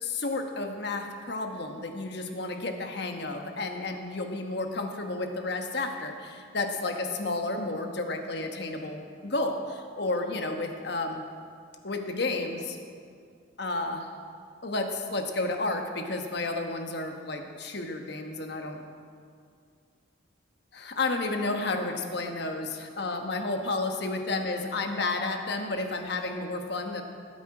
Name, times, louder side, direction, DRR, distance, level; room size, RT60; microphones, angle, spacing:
voice 1, 0.0-11.2 11.8-12.8 13.6-14.1 14.6-18.8 20.7-27.0, left 2 dB, 55° left, 4 dB, 1.2 m, -31 dB
19.0 x 8.6 x 4.9 m, 2.3 s
head